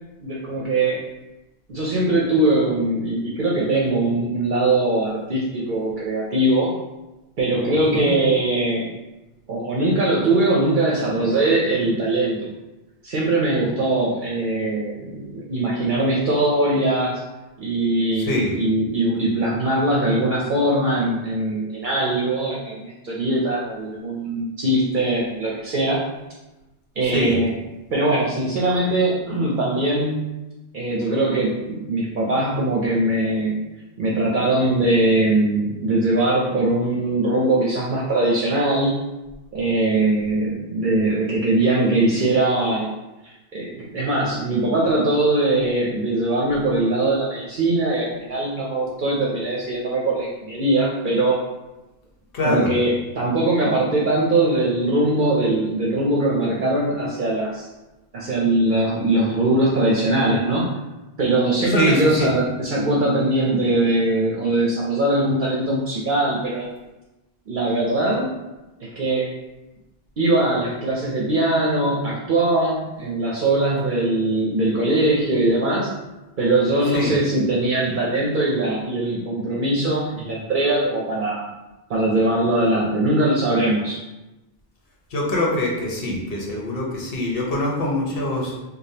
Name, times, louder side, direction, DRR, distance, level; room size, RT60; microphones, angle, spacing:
voice 1, 0.2-1.0 1.7-6.7 7.4-8.9 9.5-12.5 13.0-17.2 17.6-26.0 27.0-27.5 27.9-30.2 30.7-33.6 34.0-39.0 39.5-42.9 43.5-51.4 52.4-57.7 58.1-60.7 61.2-66.7 67.5-68.3 68.8-69.3 70.2-75.9 76.4-81.5 81.9-84.0, right 2 dB, 60° right, -4 dB, 0.7 m, -21 dB
voice 2, 7.7-8.1 18.2-18.5 27.0-27.4 52.3-52.7 61.6-62.3 76.9-77.1 85.1-88.5, left 1 dB, 65° left, -2 dB, 1.1 m, -24 dB
4.9 x 2.2 x 2.8 m, 1.0 s
omnidirectional pair, 1.0 m